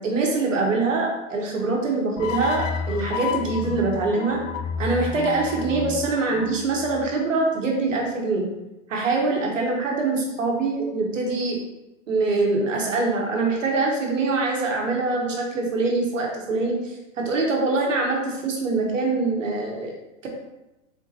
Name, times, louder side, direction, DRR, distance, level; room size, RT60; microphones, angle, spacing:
voice 1, 0.0-4.4 4.8-8.5 8.9-11.6 12.1-19.9 20.2-20.3, right 3 dB, 90° right, 0 dB, 1.3 m, -24 dB
sound 1, 2.2-7.4, left 6 dB, 80° left, 0.6 m, -31 dB
4.3 x 4.0 x 2.8 m, 0.97 s
hypercardioid pair, 125°, 37 cm